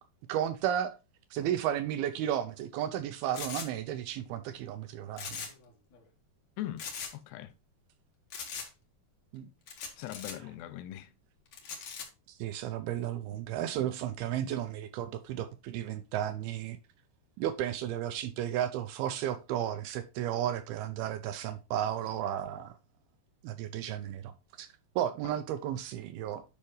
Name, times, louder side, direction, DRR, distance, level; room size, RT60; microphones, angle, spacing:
voice 1, 0.3-1.0 1.3-5.5 9.3-9.5 12.3-16.8 17.4-22.8 23.4-24.7 25.0-26.5, right 11 dB, 80° right, 2.3 m, -33 dB
sound 1, 3.3-3.7 5.1-5.7 5.9-6.0 6.8-7.1 8.3-8.7 9.7-10.3 11.5-12.0, left 6 dB, 50° left, 2.3 m, -40 dB
voice 2, 6.6-6.9 7.1-7.5 10.0-11.1 25.2-25.4, left 13 dB, 80° left, 2.6 m, -40 dB
10.5 x 5.5 x 3.1 m
omnidirectional pair, 5.0 m